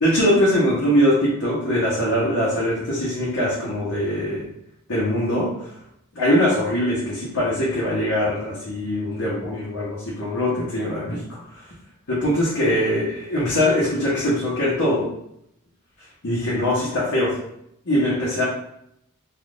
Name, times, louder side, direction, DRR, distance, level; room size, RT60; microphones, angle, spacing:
voice 1, 0.0-4.5 4.9-5.7 6.1-11.6 12.1-15.1 16.2-17.4 17.8-18.4, equal, 70° left, -8 dB, 0.9 m, -22 dB
3.5 x 2.4 x 2.4 m, 0.77 s
head